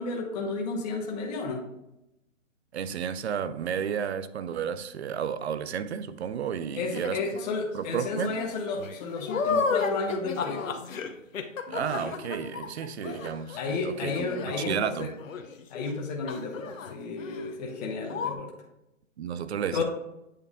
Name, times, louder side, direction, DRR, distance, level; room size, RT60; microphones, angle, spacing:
voice 1, 0.0-1.6 6.8-10.8 13.0-13.2 13.6-15.1 15.7-18.5 19.7-19.8, left 4 dB, 30° left, 0.9 m, -32 dB
voice 2, 2.7-7.2 7.7-8.3 11.7-14.1 14.4-15.1 19.2-19.8, right 8 dB, 55° right, 0.5 m, -32 dB
sound 1, 6.9-7.5 8.0-16.0 16.3-16.9 17.2-17.5 17.7-17.8 18.1-18.3, left 5 dB, 80° left, 0.9 m, -33 dB
8.4 x 3.5 x 3.6 m
hypercardioid pair, 150°, 39 cm